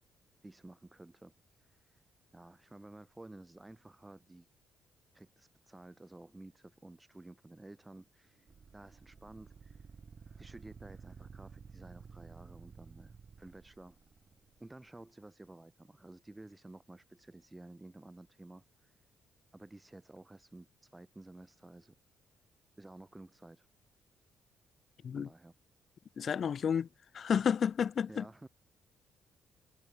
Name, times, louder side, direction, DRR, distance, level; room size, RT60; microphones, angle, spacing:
voice 1, 0.4-1.3 1.6-2.0 2.3-4.5 5.1-8.5 8.7-9.9 10.3-14.0 14.6-18.9 19.5-20.7 20.9-22.0 22.8-23.7 25.1-25.5 28.1-28.5, right 2 dB, 15° right, 2.1 m, -53 dB
sound 1, 8.5-14.6, right 5 dB, 40° right, 2.1 m, -53 dB
voice 2, 26.2-26.9 27.1-28.2, left 7 dB, 50° left, 0.5 m, -31 dB
cardioid pair, 90°, 0 cm